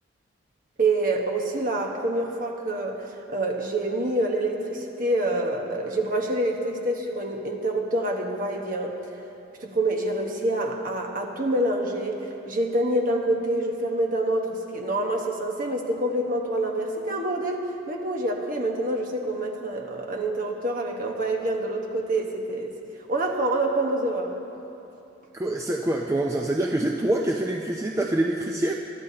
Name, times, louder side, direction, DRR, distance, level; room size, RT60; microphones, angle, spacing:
voice 1, 0.8-9.0 9.6-22.7 23.1-24.3, right 1 dB, 45° right, 0 dB, 1.2 m, -26 dB
voice 2, 25.4-28.7, right 1 dB, 15° right, 0 dB, 0.4 m, -25 dB
22.0 x 12.5 x 2.8 m, 2.9 s
head